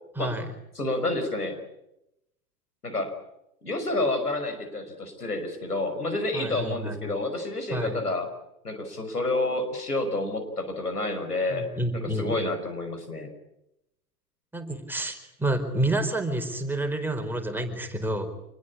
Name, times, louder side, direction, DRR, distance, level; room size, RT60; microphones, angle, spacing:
voice 1, 0.2-0.5 6.3-7.0 7.7-8.0 11.5-12.3 14.5-18.3, right 1 dB, 5° right, 4 dB, 4.6 m, -29 dB
voice 2, 0.8-1.6 2.8-3.1 3.6-8.3 8.6-11.6 11.9-13.3, left 2 dB, 85° left, 6 dB, 5.6 m, -29 dB
27.5 x 21.0 x 8.7 m, 0.85 s
figure-of-eight pair, 85°, 45 cm